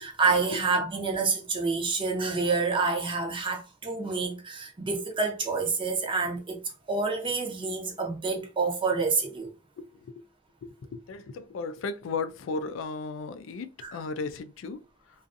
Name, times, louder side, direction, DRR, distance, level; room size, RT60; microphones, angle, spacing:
voice 1, 0.0-6.6 6.9-9.5 13.8-14.0, right 4 dB, 25° right, 0.6 m, -28 dB
voice 2, 9.9-10.2 10.6-14.8, left 4 dB, 80° left, 0.3 m, -35 dB
2.5 x 2.4 x 2.5 m
head